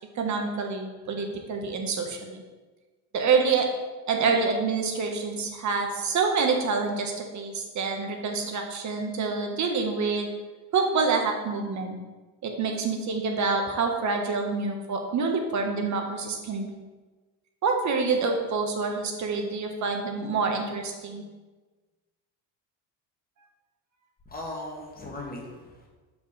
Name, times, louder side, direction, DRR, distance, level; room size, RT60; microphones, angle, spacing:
voice 1, 0.1-2.4 3.1-3.7 4.1-10.3 10.7-12.0 12.4-16.8 17.6-21.2, right 4 dB, 45° right, 3 dB, 1.2 m, -27 dB
voice 2, 24.3-25.9, left 1 dB, 20° left, -2 dB, 1.7 m, -38 dB
6.9 x 4.9 x 4.2 m, 1.3 s
cardioid pair, 125°, 42 cm